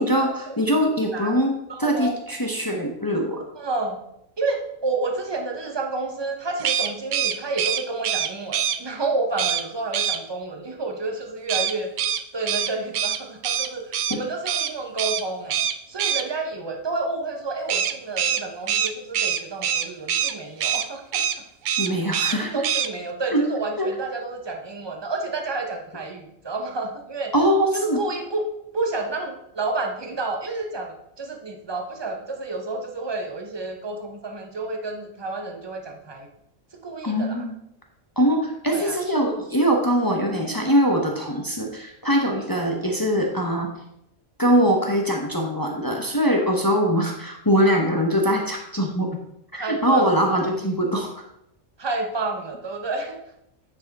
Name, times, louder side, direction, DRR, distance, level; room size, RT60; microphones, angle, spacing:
voice 1, 0.0-1.5 1.8-3.4 14.1-14.2 21.8-22.6 23.3-23.4 23.8-23.9 27.3-28.0 37.0-37.5 38.2-43.7 44.4-49.1 49.5-51.1, equal, 20° left, 1 dB, 0.9 m, -22 dB
voice 2, 1.7-2.1 3.5-4.0 4.4-11.9 12.3-15.6 15.9-21.4 22.4-27.3 27.7-28.5 28.7-36.3 36.8-37.4 38.7-39.0 49.5-50.2 51.8-53.2, right 3 dB, 20° right, 2 dB, 1.0 m, -30 dB
sound 1, 6.6-8.8 9.4-9.6 9.9-10.2 11.5-14.2 14.5-14.7 15.0-15.2 15.5-16.2 17.7-20.3 20.6-20.9 21.1-21.4 21.6-22.4 22.6-22.9, right 8 dB, 65° right, 0.4 m, -24 dB
9.5 x 4.8 x 4.2 m, 0.80 s
omnidirectional pair, 1.3 m